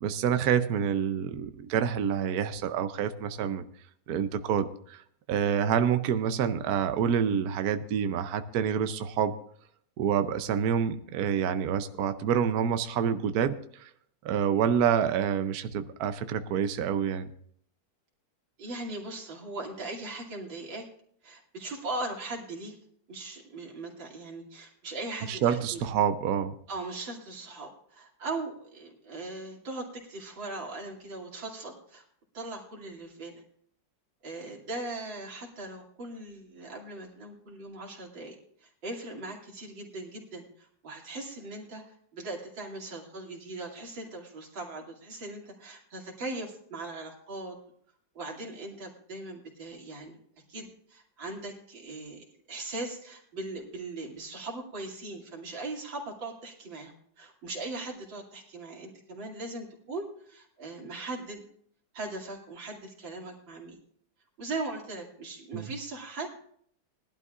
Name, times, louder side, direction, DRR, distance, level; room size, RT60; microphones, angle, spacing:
voice 1, 0.0-3.6 4.1-5.0 5.3-9.3 10.0-13.9 14.2-17.3 25.3-26.5 65.5-65.7, right 8 dB, 65° right, 9 dB, 1.1 m, -27 dB
voice 2, 18.6-20.9 21.2-22.7 23.1-25.9 26.7-32.0 32.3-33.4 34.2-38.4 38.6-47.6 48.1-50.2 50.5-61.4 61.9-63.8 64.4-66.4, right 2 dB, 90° right, -1 dB, 3.3 m, -39 dB
20.5 x 12.0 x 2.5 m, 0.64 s
omnidirectional pair, 2.0 m